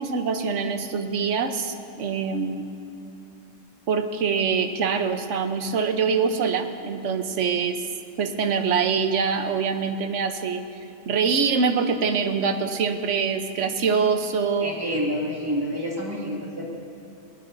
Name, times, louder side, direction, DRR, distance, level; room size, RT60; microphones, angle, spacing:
voice 1, 0.0-2.7 3.9-7.8 8.2-10.6 11.1-14.8, right 5 dB, 55° right, 7 dB, 1.1 m, -24 dB
voice 2, 14.6-16.7, equal, 15° right, -4 dB, 2.5 m, -28 dB
21.0 x 19.5 x 2.7 m, 2.8 s
omnidirectional pair, 1.6 m